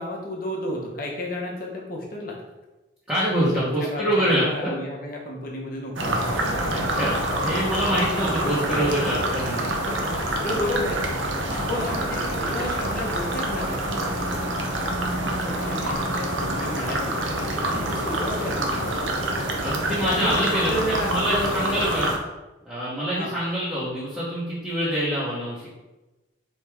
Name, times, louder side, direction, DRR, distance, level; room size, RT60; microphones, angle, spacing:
voice 1, 0.0-2.4 3.5-6.4 7.9-9.2 9.8-10.0 10.2-11.1 11.7-14.2 15.2-19.4 20.0-22.1 23.1-23.4, left 1 dB, 50° left, -2 dB, 0.8 m, -32 dB
voice 2, 3.1-4.7 6.7-7.2 7.4-9.7 11.5-11.7 17.7-18.0 19.6-22.1 22.7-25.7, equal, 10° right, -10 dB, 1.0 m, -25 dB
sound 1, 6.0-22.2, right 1 dB, 85° right, 0.7 m, -26 dB
4.5 x 3.1 x 3.5 m, 1.1 s
head